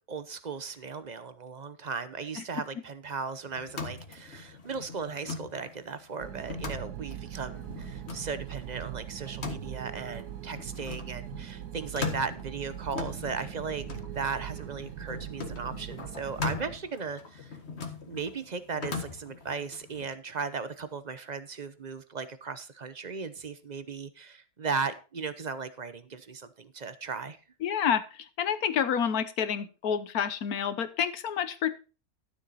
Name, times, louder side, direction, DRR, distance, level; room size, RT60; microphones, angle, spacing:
voice 1, 0.1-17.5 18.1-27.4, right 5 dB, 40° right, 13 dB, 0.7 m, -37 dB
sound 1, 3.5-20.0, left 4 dB, 45° left, 1.8 m, -40 dB
sound 2, 6.2-16.8, right 11 dB, 80° right, 1.3 m, -41 dB
voice 2, 27.6-31.7, left 8 dB, 70° left, 13 dB, 1.4 m, -29 dB
12.5 x 7.2 x 4.1 m, 0.33 s
omnidirectional pair, 1.7 m